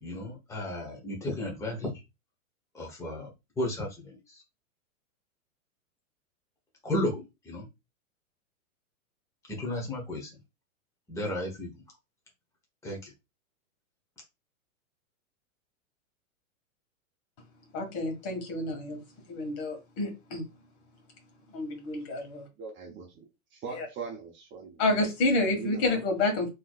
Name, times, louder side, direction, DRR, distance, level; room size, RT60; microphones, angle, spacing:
voice 1, 0.0-1.9 2.7-3.3 3.6-4.4 6.8-7.6 9.5-10.3 11.1-11.7 12.8-13.1, left 1 dB, 5° left, 1.1 m, -33 dB
voice 2, 17.7-19.0 19.3-20.5 21.5-22.4 23.7-23.9 24.8-26.5, left 2 dB, 45° left, 1.8 m, -29 dB
voice 3, 22.6-23.1 23.5-24.8 25.6-25.8, right 5 dB, 30° right, 0.9 m, -40 dB
3.9 x 3.1 x 2.4 m
hypercardioid pair, 125°, 42 cm